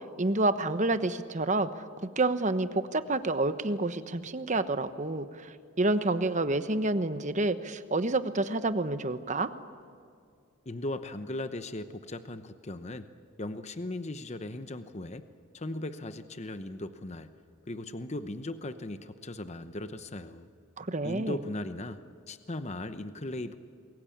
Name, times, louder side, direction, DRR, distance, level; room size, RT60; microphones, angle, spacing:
voice 1, 0.2-1.8 2.2-9.5 20.8-21.4, right 2 dB, 35° right, 11 dB, 1.1 m, -28 dB
voice 2, 10.7-13.0 13.4-15.3 15.5-17.3 17.7-20.5 21.0-22.0 22.3-23.6, left 1 dB, 30° left, 10 dB, 0.9 m, -38 dB
28.0 x 21.5 x 8.6 m, 2.3 s
head